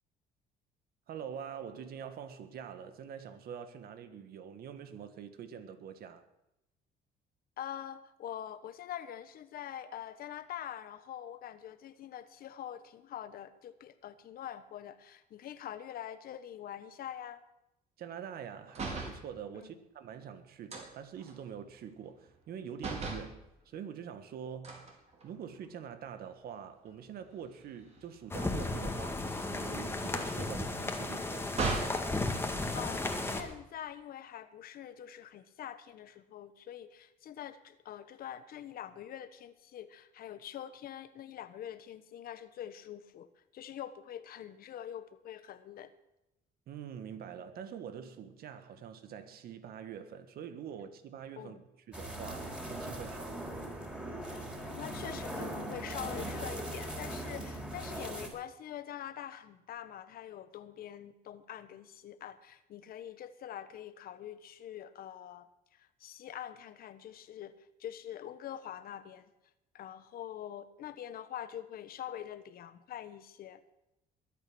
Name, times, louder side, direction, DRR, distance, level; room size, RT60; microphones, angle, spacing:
voice 1, 1.1-6.2 18.0-24.9 25.2-31.5 46.7-53.6, right 8 dB, 65° right, 1.7 m, -45 dB
voice 2, 7.6-17.4 19.5-19.8 32.7-45.9 51.4-51.6 54.3-69.3 69.7-73.6, left 10 dB, 60° left, 1.2 m, -45 dB
sound 1, 18.7-19.2 20.7-22.5 22.8-23.3 24.6-25.7 26.2-26.4 26.7-32.0 33.1-33.8, right 3 dB, 40° right, 4.4 m, -41 dB
sound 2, 28.3-33.4, left 2 dB, 15° left, 1.9 m, -34 dB
sound 3, 51.9-58.3, right 1 dB, 5° right, 4.0 m, -40 dB
22.0 x 8.9 x 6.2 m
cardioid pair, 110°, 17 cm